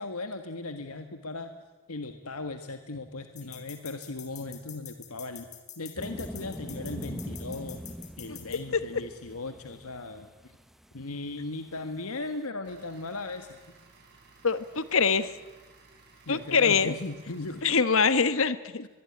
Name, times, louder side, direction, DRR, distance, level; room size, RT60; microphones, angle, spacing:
voice 1, 0.0-1.5 1.9-7.8 8.2-10.5 10.9-13.6 16.2-17.7 18.8-18.9, left 2 dB, 90° left, 8 dB, 1.6 m, -37 dB
sound 1, 3.4-8.6, left 10 dB, 35° left, 3.2 m, -46 dB
sound 2, 6.0-11.4 11.7-11.8 12.0-12.1 12.3-12.4, equal, ahead, 0.9 m, -42 dB
sound 3, 12.6-17.6, right 3 dB, 55° right, 7.9 m, -57 dB
voice 2, 14.4-15.3 16.3-16.9 17.6-18.8, left 5 dB, 65° left, 14 dB, 1.2 m, -24 dB
23.5 x 21.5 x 9.9 m, 1.2 s
head